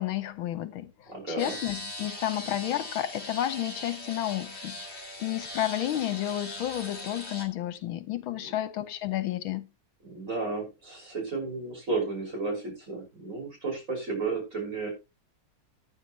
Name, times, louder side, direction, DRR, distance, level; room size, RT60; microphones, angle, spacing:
voice 1, 0.0-9.7, left 13 dB, 80° left, 1.6 m, -31 dB
voice 2, 1.1-1.5 8.4-8.5 10.0-14.9, right 3 dB, 35° right, 6.4 m, -33 dB
sound 1, 1.4-7.5, left 1 dB, 30° left, 3.5 m, -40 dB
14.5 x 9.5 x 3.1 m
omnidirectional pair, 2.3 m